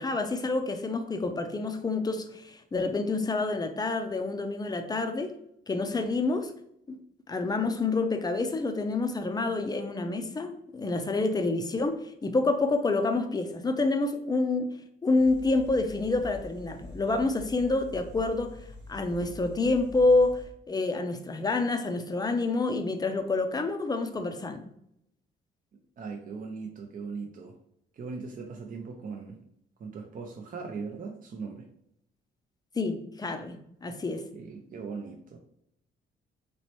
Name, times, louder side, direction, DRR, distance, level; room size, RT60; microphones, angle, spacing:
voice 1, 0.0-5.3 5.7-6.5 6.9-7.0 7.3-14.7 15.0-18.6 18.9-24.7 32.8-34.2, left 3 dB, 20° left, 6 dB, 0.4 m, -28 dB
sound 1, 15.2-20.5, left 1 dB, 70° right, 0.9 m, -46 dB
voice 2, 26.0-27.6 27.9-29.4 29.8-31.7 34.3-35.4, right 4 dB, 45° right, 2 dB, 0.5 m, -39 dB
3.1 x 3.0 x 2.9 m, 0.74 s
cardioid pair, 90°, 20 cm